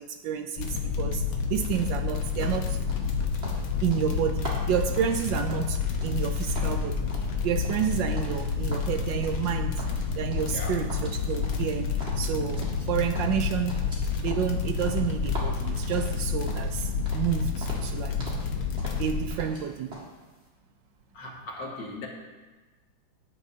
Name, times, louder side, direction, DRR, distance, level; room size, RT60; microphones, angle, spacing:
voice 1, 0.0-2.8 3.8-9.8 10.2-18.2 19.0-20.1, right 8 dB, 75° right, 8 dB, 1.1 m, -30 dB
sound 1, 0.6-19.3, left 5 dB, 85° left, 1.9 m, -29 dB
sound 2, 2.4-6.3 6.5-8.4 8.7-9.5 9.8-10.6 10.9-12.9 13.1-16.8 17.1-17.3 17.6-18.5 18.8-19.6 19.9-20.1, equal, 30° right, 2.2 m, -41 dB
voice 2, 21.1-22.1, left 2 dB, 60° left, -1 dB, 2.2 m, -38 dB
13.5 x 9.9 x 2.8 m, 1.3 s
omnidirectional pair, 2.2 m